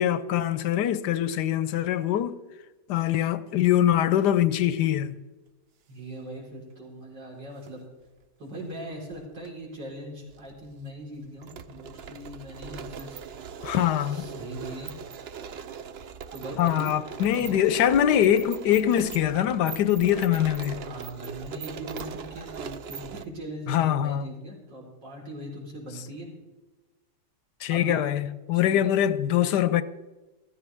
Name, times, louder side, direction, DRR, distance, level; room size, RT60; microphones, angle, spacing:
voice 1, 0.0-2.4 2.9-5.2 13.6-14.3 16.6-20.8 23.7-24.3 27.6-29.8, left 11 dB, 80° left, 1.2 m, -23 dB
voice 2, 5.9-7.8 8.4-13.2 14.1-14.9 16.3-16.9 17.4-17.5 20.7-26.3 27.7-28.0 28.6-29.0, right 1 dB, 85° right, 4.8 m, -40 dB
sound 1, 7.4-7.7 8.7-9.5 9.8-9.9 10.3-23.2, right 6 dB, 65° right, 0.6 m, -40 dB
15.0 x 14.0 x 3.5 m
omnidirectional pair, 1.9 m